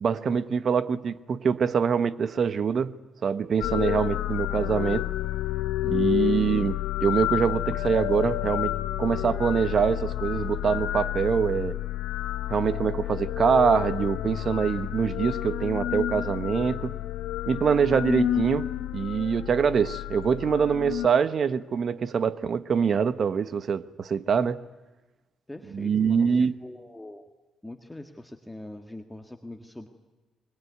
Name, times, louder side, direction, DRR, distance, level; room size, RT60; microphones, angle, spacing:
voice 1, 0.0-5.1 5.9-11.8 12.5-17.0 17.5-24.6 25.7-26.5, right 6 dB, 50° right, 1.1 m, -24 dB
sound 1, 3.6-21.1, left 14 dB, 90° left, 1.3 m, -30 dB
voice 2, 5.8-6.3 25.5-26.3 26.6-27.3 27.6-29.9, left 1 dB, 10° left, 1.7 m, -42 dB
25.0 x 22.5 x 9.6 m
cardioid pair, 90°, 0 cm